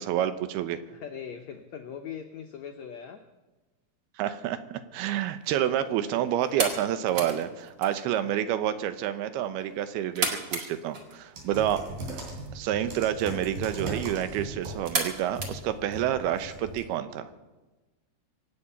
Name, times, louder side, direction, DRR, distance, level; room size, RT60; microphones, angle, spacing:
voice 1, 0.0-0.8 4.2-11.8 12.5-17.3, right 11 dB, 85° right, 11 dB, 2.8 m, -28 dB
voice 2, 0.9-3.2 5.9-6.1 11.7-12.0 16.0-16.3, left 8 dB, 90° left, 5 dB, 1.5 m, -42 dB
sound 1, 5.0-16.4, right 3 dB, 40° right, 1.9 m, -37 dB
sound 2, 11.4-16.8, right 1 dB, 65° right, 4.7 m, -39 dB
25.0 x 8.6 x 5.6 m, 1.2 s
omnidirectional pair, 4.4 m